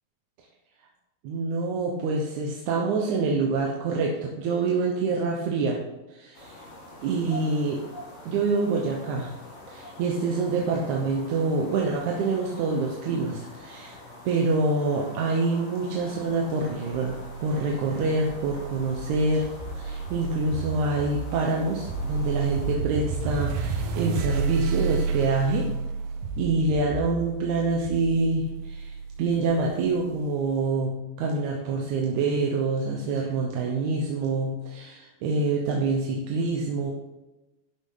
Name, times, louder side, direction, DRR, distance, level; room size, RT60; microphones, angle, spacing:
voice 1, 1.2-5.8 6.1-6.6 7.0-7.9 8.3-9.3 9.7-14.0 14.3-19.5 19.8-25.7 26.4-36.9, right 3 dB, 70° right, 0 dB, 2.1 m, -26 dB
sound 1, 6.3-22.7, left 1 dB, 65° left, 3.9 m, -45 dB
sound 2, 16.9-30.1, right 4 dB, 90° right, 2.7 m, -31 dB
12.0 x 6.0 x 3.8 m, 1.0 s
omnidirectional pair, 3.9 m